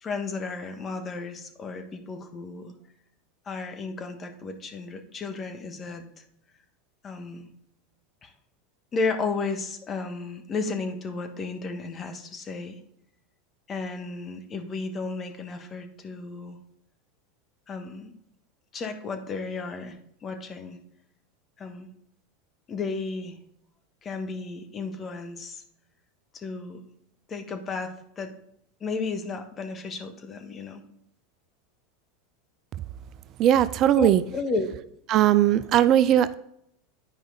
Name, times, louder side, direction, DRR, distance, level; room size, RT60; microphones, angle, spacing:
voice 1, 0.0-2.7 3.4-6.0 7.0-7.5 8.2-8.3 8.9-12.8 13.7-16.6 17.7-18.1 18.7-20.8 21.6-21.9 22.7-23.4 24.0-25.6 26.3-26.8 27.3-28.3 28.8-30.8 34.0-34.7, left 4 dB, 30° left, 6 dB, 1.3 m, -33 dB
voice 2, 33.4-34.2 35.1-36.4, right 11 dB, 45° right, 15 dB, 0.4 m, -19 dB
9.8 x 5.0 x 3.9 m, 0.74 s
hypercardioid pair, 90°, 0 cm